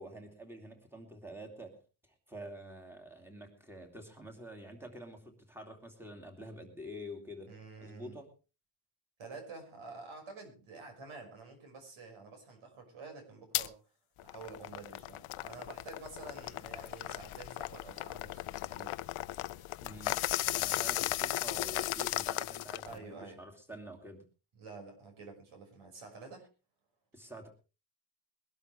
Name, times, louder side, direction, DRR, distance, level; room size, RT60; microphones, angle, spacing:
voice 1, 0.0-7.5 7.8-8.3 19.8-24.2 27.1-27.5, equal, 5° right, 2 dB, 2.6 m, -48 dB
voice 2, 7.5-8.2 9.2-13.8 14.2-19.0 22.8-23.4 24.5-26.5, right 4 dB, 80° right, 4 dB, 6.0 m, -49 dB
sound 1, 13.5-13.7 14.2-23.0, left 16 dB, 85° left, 0.7 m, -36 dB
22.0 x 12.5 x 3.4 m, 0.33 s
wide cardioid pair, 180°, 48 cm